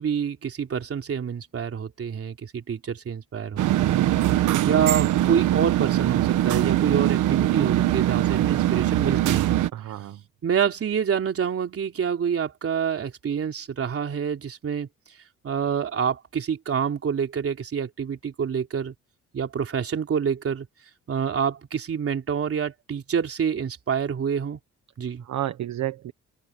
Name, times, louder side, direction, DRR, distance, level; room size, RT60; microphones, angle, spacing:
voice 1, 0.0-4.1 4.6-9.6 10.4-14.9 15.4-18.9 19.3-20.7 21.1-24.6 25.0-25.2, right 7 dB, 50° right, 3.3 m, -27 dB
sound 1, 3.6-9.7, right 13 dB, 80° right, 1.2 m, -22 dB
voice 2, 9.7-10.2 25.2-26.1, right 13 dB, 65° right, 1.3 m, -31 dB
cardioid pair, 90°, 30 cm